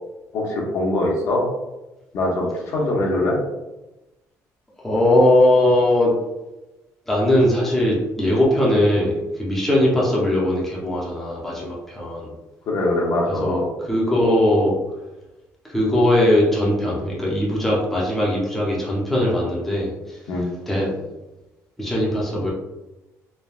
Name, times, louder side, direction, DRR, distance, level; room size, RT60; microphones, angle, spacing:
voice 1, 0.3-1.4 2.1-3.4 12.7-13.7 20.3-20.5, left 1 dB, 55° left, -2 dB, 0.7 m, -22 dB
voice 2, 4.8-6.1 7.1-12.3 13.4-14.8 15.6-20.2 20.7-21.0 21.8-22.5, left 1 dB, 5° left, -5 dB, 0.5 m, -20 dB
3.2 x 2.1 x 2.3 m, 1.0 s
cardioid pair, 175°, 6 cm